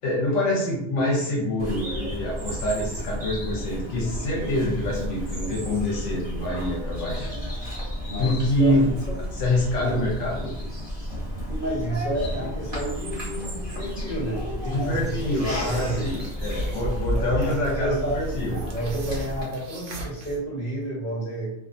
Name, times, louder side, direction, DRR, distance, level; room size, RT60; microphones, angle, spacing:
voice 1, 0.0-7.3 8.1-8.9 9.3-10.5 14.7-18.6, left 1 dB, 80° left, -3 dB, 1.0 m, -26 dB
Bird vocalization bird call bird song, 1.6-19.4, equal, 25° right, 1.0 m, -33 dB
voice 2, 8.1-9.2 9.8-10.0 11.5-16.1 17.1-21.5, right 1 dB, 45° left, -5 dB, 1.2 m, -31 dB
sound 1, 14.8-20.4, right 1 dB, 75° right, 0.9 m, -34 dB
2.4 x 2.3 x 2.5 m, 0.81 s
omnidirectional pair, 1.3 m